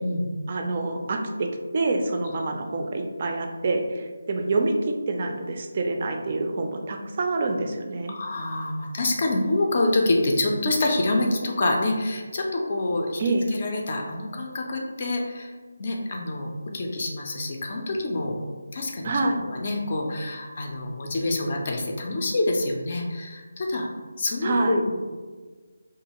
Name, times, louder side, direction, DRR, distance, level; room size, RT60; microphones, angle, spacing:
voice 1, 0.5-8.2 13.2-13.4 19.0-19.4 24.4-24.8, right 2 dB, 40° right, 3 dB, 0.3 m, -26 dB
voice 2, 8.1-13.2 13.5-15.5 15.8-18.4 18.7-19.1 19.4-23.9 24.2-24.9, left 2 dB, 45° left, 1 dB, 0.4 m, -26 dB
2.5 x 2.3 x 2.9 m, 1.4 s
figure-of-eight pair, 155°, 0 cm